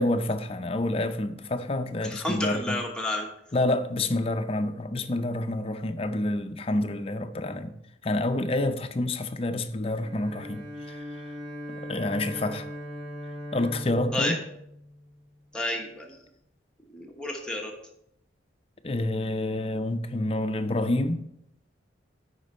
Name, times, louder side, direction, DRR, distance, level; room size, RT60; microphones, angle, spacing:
voice 1, 0.0-2.8 3.5-7.8 8.0-11.3 11.7-12.7 13.5-14.4 18.8-21.2, left 1 dB, 30° left, 0.5 m, -28 dB
voice 2, 2.0-3.3 14.1-14.4 15.5-16.2 16.9-17.7, left 1 dB, 5° left, 1.0 m, -31 dB
Bowed string instrument, 10.0-15.4, equal, 25° right, 2.1 m, -40 dB
10.0 x 4.4 x 4.2 m
head